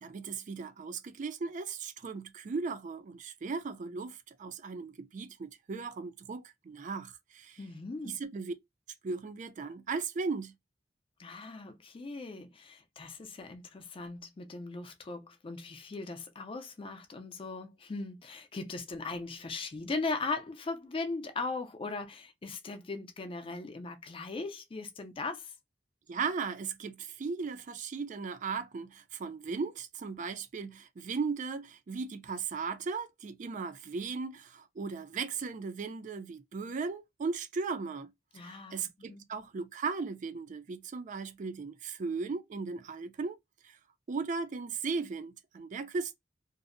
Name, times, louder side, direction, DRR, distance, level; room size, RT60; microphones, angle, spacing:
voice 1, 0.0-7.6 8.0-8.5 9.0-10.5 26.1-43.4 43.6-43.8 44.1-46.1, right 4 dB, 45° right, 0.4 m, -37 dB
voice 2, 7.6-8.2 11.2-25.5 38.3-39.2, left 3 dB, 30° left, 0.4 m, -39 dB
2.6 x 2.0 x 2.5 m
head